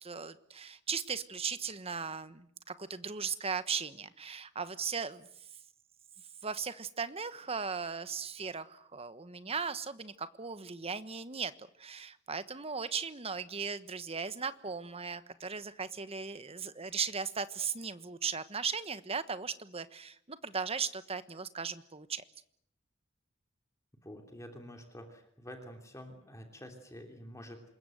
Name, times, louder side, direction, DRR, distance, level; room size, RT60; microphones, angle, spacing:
voice 1, 0.0-5.3 6.4-22.2, right 5 dB, 30° right, 12 dB, 1.2 m, -37 dB
voice 2, 24.0-27.6, equal, 15° left, 4 dB, 3.1 m, -48 dB
27.0 x 21.5 x 7.9 m, 0.69 s
head